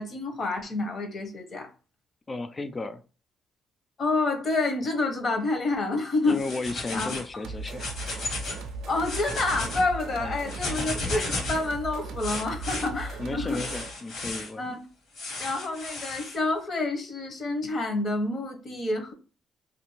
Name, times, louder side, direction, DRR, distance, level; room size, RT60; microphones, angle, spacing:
voice 1, 0.0-1.7 4.0-6.4 6.9-7.4 8.9-13.7 14.6-14.8 15.4-19.1, left 2 dB, 50° left, 0.8 m, -28 dB
voice 2, 2.3-3.0 6.3-7.9 10.2-10.5 13.2-14.6, left 3 dB, 30° left, 0.4 m, -34 dB
sound 1, 6.3-7.3 7.7-8.6 8.9-9.8 10.5-11.7 12.2-12.9 13.5-14.5 15.1-16.4, left 2 dB, 75° left, 1.3 m, -34 dB
sound 2, 7.4-14.0, right 3 dB, 85° right, 0.4 m, -38 dB
2.6 x 2.5 x 3.0 m
cardioid pair, 90°, 0 cm